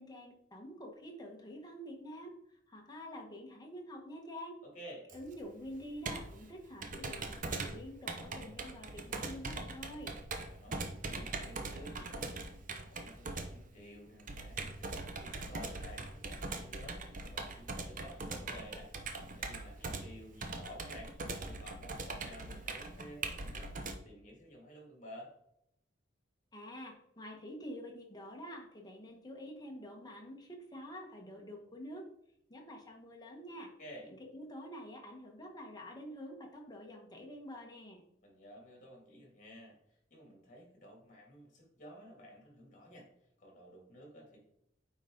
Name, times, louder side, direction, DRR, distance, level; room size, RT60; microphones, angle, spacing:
voice 1, 0.0-4.6 5.1-10.1 26.5-32.0 32.5-33.7 34.0-38.0, equal, 20° left, 0 dB, 1.3 m, -47 dB
voice 2, 4.6-5.0 10.3-25.3 33.8-34.1 38.2-43.1 43.4-44.4, equal, 45° left, -1 dB, 2.5 m, -53 dB
Computer keyboard, 5.1-24.0, right 3 dB, 45° right, 0.8 m, -41 dB
9.0 x 3.9 x 3.8 m, 0.76 s
head